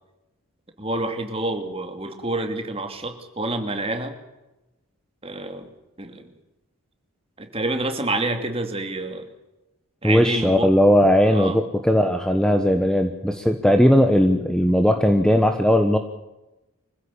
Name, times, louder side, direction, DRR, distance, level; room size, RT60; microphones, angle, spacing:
voice 1, 0.8-4.1 5.2-5.7 6.0-6.3 7.4-9.2 10.0-10.7 11.3-11.6, right 2 dB, 25° right, 6 dB, 2.7 m, -28 dB
voice 2, 10.0-16.0, equal, 5° left, 6 dB, 1.2 m, -18 dB
25.0 x 15.5 x 8.5 m, 1.0 s
head